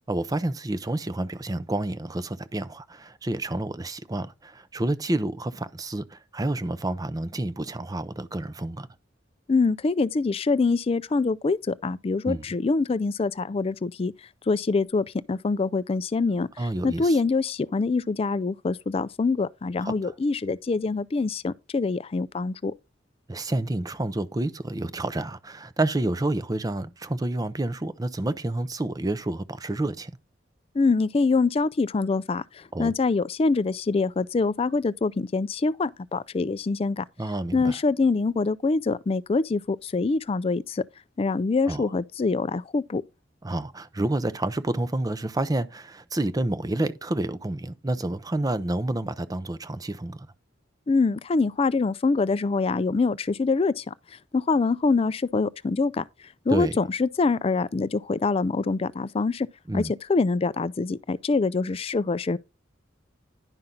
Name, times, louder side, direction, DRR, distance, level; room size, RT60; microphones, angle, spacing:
voice 1, 0.1-8.9 12.2-12.4 16.6-17.2 19.8-19.9 23.3-30.1 32.7-32.9 37.2-37.8 41.7-41.9 43.4-50.3 56.5-56.8 59.7-59.9, right 2 dB, 20° right, 0.5 m, -29 dB
voice 2, 9.5-14.1 14.5-22.7 30.7-37.0 37.5-40.8 41.2-43.0 50.9-53.9 54.3-56.0 56.5-59.5 59.7-59.8 60.1-62.4, left 3 dB, 30° left, 0.3 m, -25 dB
11.0 x 5.6 x 3.8 m
head